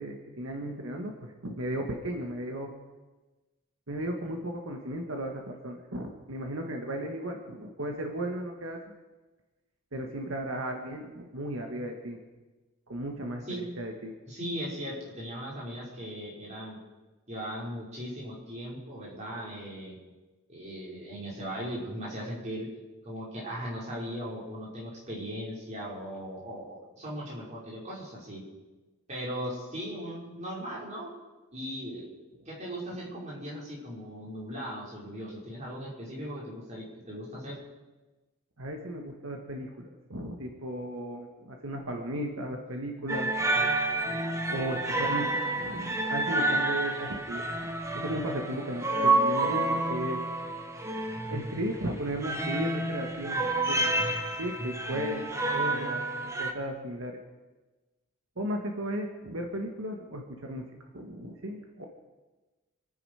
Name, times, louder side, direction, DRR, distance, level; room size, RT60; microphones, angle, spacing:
voice 1, 0.0-2.7 3.9-8.8 9.9-12.2 12.9-14.2 38.6-43.3 44.5-47.5 47.9-50.2 51.3-54.1 54.4-57.2 58.4-60.7 60.9-61.9, right 1 dB, 80° right, 2 dB, 1.7 m, -35 dB
voice 2, 14.3-16.8 17.3-20.0 20.5-22.7 23.0-28.4 29.1-31.1 31.5-32.1 32.5-37.6, equal, 35° right, -6 dB, 5.6 m, -38 dB
sound 1, 43.1-56.5, right 2 dB, 15° right, 1.1 m, -29 dB
27.0 x 10.0 x 5.0 m, 1.2 s
head